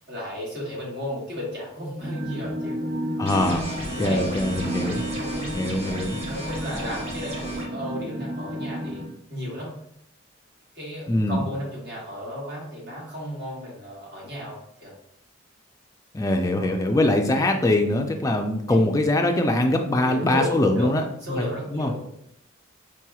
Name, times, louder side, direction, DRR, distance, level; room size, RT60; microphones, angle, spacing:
voice 1, 0.1-2.8 3.9-4.3 4.8-5.5 6.2-9.0 9.3-9.8 10.7-14.9 16.5-16.7 17.0-17.2 18.6-18.8 19.9-20.9 21.2-22.0, left 1 dB, 50° right, -5 dB, 1.5 m, -34 dB
sound 1, 2.0-9.1, right 1 dB, 10° right, 1.1 m, -32 dB
voice 2, 3.2-3.7 4.0-5.0 5.5-6.2 11.1-11.4 16.1-21.0 21.3-21.9, left 1 dB, 15° left, 4 dB, 0.3 m, -22 dB
sound 2, 3.3-7.7, equal, 30° right, 0.9 m, -35 dB
4.7 x 2.9 x 2.3 m, 0.73 s
head